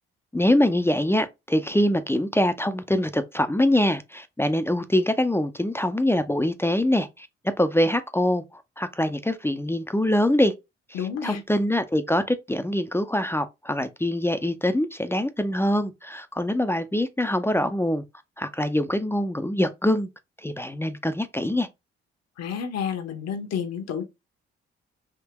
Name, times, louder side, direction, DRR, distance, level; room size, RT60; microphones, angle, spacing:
voice 1, 0.3-7.3 7.6-10.5 10.9-18.0 18.4-20.1 20.4-21.7, left 1 dB, 10° left, 0.5 m, -24 dB
voice 2, 10.9-11.4 22.4-24.1, left 7 dB, 60° left, 0.9 m, -30 dB
3.6 x 2.8 x 2.9 m
hypercardioid pair, 45°, 30 cm